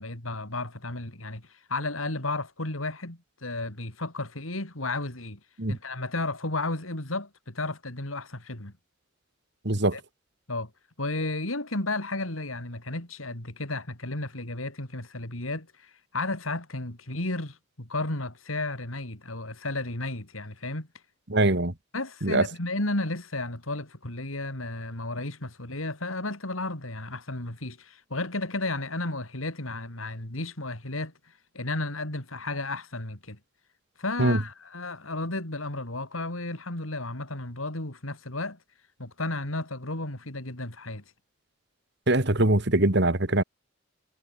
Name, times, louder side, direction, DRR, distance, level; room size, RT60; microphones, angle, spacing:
voice 1, 0.0-5.4 5.7-8.7 9.9-10.0 10.5-10.7 11.0-20.9 21.9-31.1 31.5-33.4 34.0-38.6 39.0-41.0, left 2 dB, 85° left, 4.6 m, -33 dB
voice 2, 9.6-10.0 21.3-21.7 22.2-22.5 34.2-34.4 42.1-43.4, right 2 dB, 55° right, 2.2 m, -22 dB
head